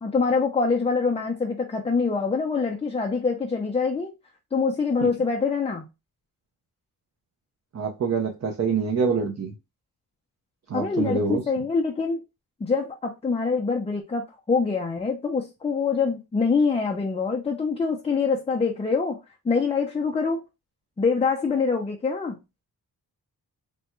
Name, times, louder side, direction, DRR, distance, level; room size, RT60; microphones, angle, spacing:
voice 1, 0.0-4.1 4.5-5.8 10.7-12.2 12.6-19.2 19.4-20.4 21.0-22.4, left 4 dB, 15° left, 0.4 m, -25 dB
voice 2, 7.7-9.5 10.7-11.4, right 5 dB, 40° right, 0.5 m, -25 dB
3.4 x 2.1 x 2.9 m
wide cardioid pair, 120°, 39 cm